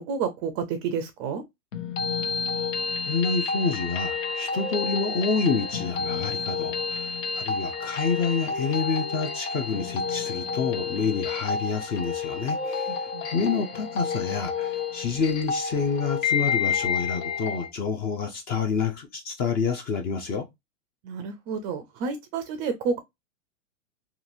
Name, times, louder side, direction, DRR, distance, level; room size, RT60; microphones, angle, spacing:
voice 1, 0.0-1.4 12.9-13.3 21.0-23.0, right 5 dB, 30° right, 0.4 m, -30 dB
sound 1, 1.7-17.7, left 5 dB, 80° left, 0.9 m, -30 dB
voice 2, 3.0-13.0 13.3-20.4, left 5 dB, 25° left, 0.5 m, -28 dB
2.9 x 2.4 x 2.5 m
hypercardioid pair, 135°, 39 cm